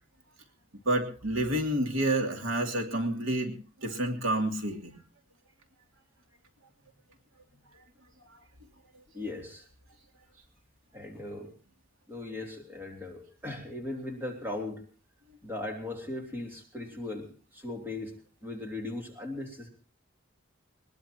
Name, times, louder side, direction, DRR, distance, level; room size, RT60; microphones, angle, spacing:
voice 1, 0.9-3.5 3.8-5.0, right 1 dB, 75° right, 3 dB, 2.8 m, -29 dB
voice 2, 9.1-9.6 10.9-11.5 12.1-14.8 15.4-18.2 18.4-19.7, left 2 dB, 10° right, 1 dB, 3.2 m, -38 dB
21.0 x 21.0 x 3.0 m, 0.37 s
head